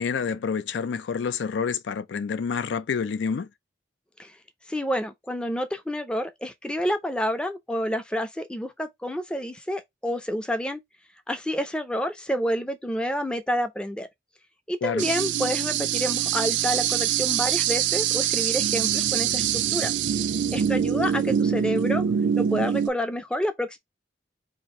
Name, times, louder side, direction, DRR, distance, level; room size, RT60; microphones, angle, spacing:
voice 1, 0.0-3.5 14.8-15.0, left 6 dB, 80° left, 0.4 m, -28 dB
voice 2, 4.7-10.8 11.3-14.1 14.7-19.9 20.5-22.0 22.4-23.8, equal, 5° left, 0.4 m, -29 dB
sound 1, 15.0-22.9, right 9 dB, 80° right, 0.4 m, -24 dB
2.8 x 2.5 x 4.1 m
head